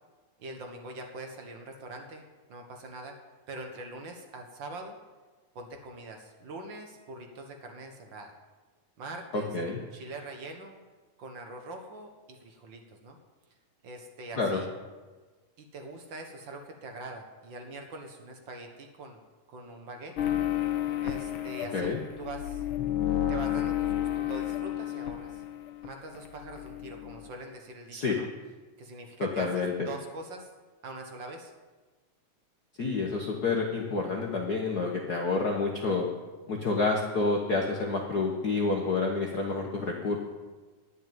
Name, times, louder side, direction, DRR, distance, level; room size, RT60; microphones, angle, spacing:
voice 1, 0.4-2.2 2.5-3.1 3.5-5.0 5.5-8.3 9.0-9.5 9.9-10.8 11.2-13.2 13.8-14.7 15.6-19.2 19.5-20.2 21.0-22.6 23.3-25.4 25.8-28.3 28.8-30.5 30.8-31.5, right 2 dB, 50° right, 4 dB, 1.5 m, -43 dB
voice 2, 9.3-9.8 14.3-14.6 21.7-22.0 27.9-28.2 29.2-29.9 32.8-36.1 36.5-40.2, left 3 dB, 55° left, 0 dB, 1.1 m, -29 dB
sound 1, 20.2-25.9 26.1-27.3, left 11 dB, 75° left, 1.2 m, -31 dB
11.5 x 6.4 x 9.1 m, 1.3 s
omnidirectional pair, 3.4 m